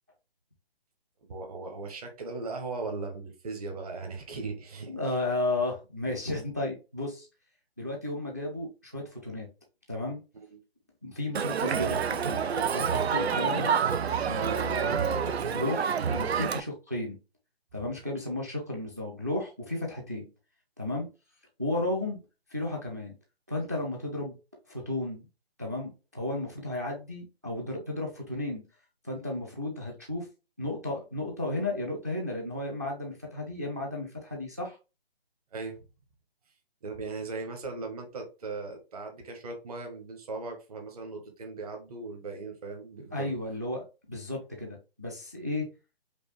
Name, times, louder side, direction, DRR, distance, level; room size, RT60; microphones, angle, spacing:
voice 1, 1.3-5.1 10.3-10.6 13.4-13.6 35.5-35.8 36.8-43.3, right 3 dB, 35° right, 1.0 m, -38 dB
voice 2, 4.9-7.3 7.8-9.5 9.9-10.2 11.0-12.4 12.7-13.7 14.3-17.2 17.7-20.3 20.8-21.1 21.6-22.2 22.5-23.1 23.5-24.4 24.7-25.3 25.6-28.6 29.0-30.3 30.6-34.8 43.1-45.7, left 2 dB, 15° right, 0.4 m, -33 dB
Crowd, 11.3-16.6, right 7 dB, 85° right, 0.5 m, -28 dB
5.1 x 2.2 x 3.0 m
figure-of-eight pair, 155°, 31 cm